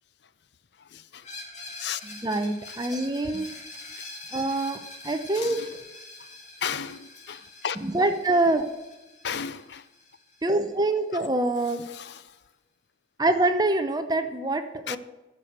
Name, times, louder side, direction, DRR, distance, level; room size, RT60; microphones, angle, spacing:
Screech, 1.2-10.9, left 2 dB, 40° left, 2.1 m, -44 dB
voice 1, 2.0-3.5 4.3-4.8 5.0-5.6 7.8-8.7 10.4-11.8 13.2-15.0, right 2 dB, 20° right, 8 dB, 0.7 m, -25 dB
voice 2, 5.4-5.7 6.6-7.8 9.2-9.8 11.9-12.1 14.9-15.0, left 8 dB, 60° left, 15 dB, 0.5 m, -33 dB
10.5 x 7.6 x 6.6 m, 1.1 s
head